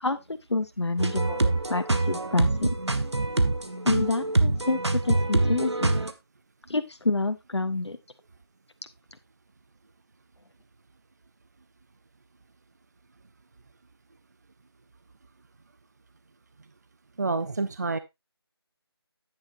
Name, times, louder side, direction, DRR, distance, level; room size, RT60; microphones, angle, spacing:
voice 1, 0.0-2.7 3.8-4.8 5.0-5.9 6.7-8.0, left 2 dB, 90° left, 9 dB, 1.2 m, -28 dB
sound 1, 1.0-6.1, right 2 dB, 90° right, 1.6 m, -25 dB
voice 2, 17.2-18.0, right 3 dB, 40° right, 12 dB, 0.6 m, -28 dB
10.0 x 9.8 x 2.6 m, 0.21 s
figure-of-eight pair, 170°, 14 cm